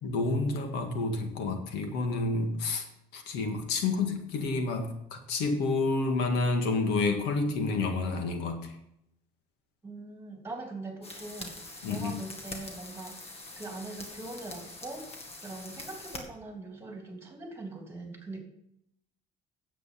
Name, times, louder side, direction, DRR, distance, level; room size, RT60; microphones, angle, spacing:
voice 1, 0.0-2.9 3.1-8.7 11.8-12.1, left 3 dB, 90° left, 5 dB, 1.8 m, -29 dB
voice 2, 9.8-15.1 15.4-18.4, right 2 dB, 15° right, 2 dB, 3.1 m, -42 dB
sound 1, 11.0-16.2, left 2 dB, 35° left, 2.3 m, -44 dB
9.9 x 8.1 x 5.7 m, 0.77 s
cardioid pair, 110°, 17 cm